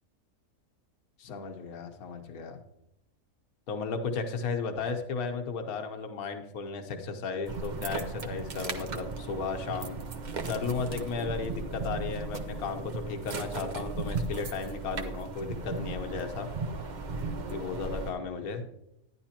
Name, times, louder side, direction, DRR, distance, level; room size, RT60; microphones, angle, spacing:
voice 1, 1.2-2.6 3.7-10.0 10.5-16.5 17.5-18.7, left 5 dB, 80° left, 5 dB, 1.4 m, -34 dB
sound 1, 7.5-18.1, right 3 dB, 40° right, 0.7 m, -36 dB
11.0 x 10.5 x 2.9 m, 0.83 s
omnidirectional pair, 1.5 m